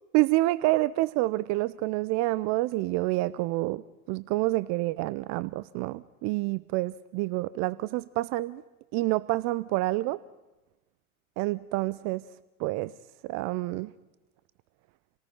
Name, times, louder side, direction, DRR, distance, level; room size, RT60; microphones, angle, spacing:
voice 1, 0.1-8.6 8.9-10.2 11.4-12.2 12.6-12.9 13.2-13.9, right 19 dB, 40° right, 18 dB, 0.6 m, -28 dB
29.0 x 18.5 x 5.5 m, 1.0 s
hypercardioid pair, 90°, 43 cm